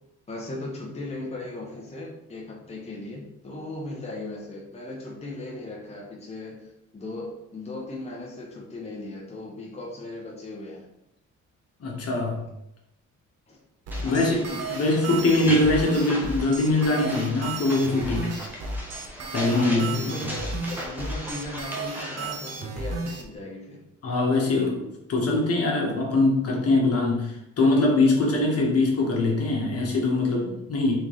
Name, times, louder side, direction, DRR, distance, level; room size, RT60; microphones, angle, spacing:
voice 1, 0.3-10.9 13.5-13.6 14.0-14.3 19.5-23.8, left 2 dB, 20° left, -3 dB, 0.9 m, -37 dB
voice 2, 11.8-12.4 14.0-18.3 19.3-20.0 24.0-31.0, left 2 dB, 50° left, -1 dB, 1.3 m, -23 dB
sound 1, 13.9-22.4, equal, 5° right, 0.9 m, -38 dB
sound 2, 13.9-23.2, right 3 dB, 60° right, 0.8 m, -33 dB
3.7 x 3.6 x 3.1 m, 0.86 s
cardioid pair, 90°, 30 cm